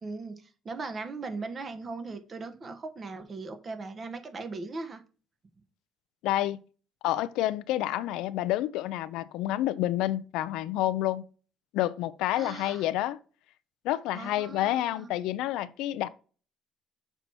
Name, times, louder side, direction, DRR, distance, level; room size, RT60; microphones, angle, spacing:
voice 1, 0.0-5.0 12.4-12.8 14.1-15.1, right 3 dB, 35° right, 1.1 m, -39 dB
voice 2, 6.2-6.6 7.0-11.3 11.7-13.2 13.8-16.1, left 14 dB, 85° left, 0.5 m, -29 dB
6.8 x 4.5 x 4.3 m
cardioid pair, 110°, 0 cm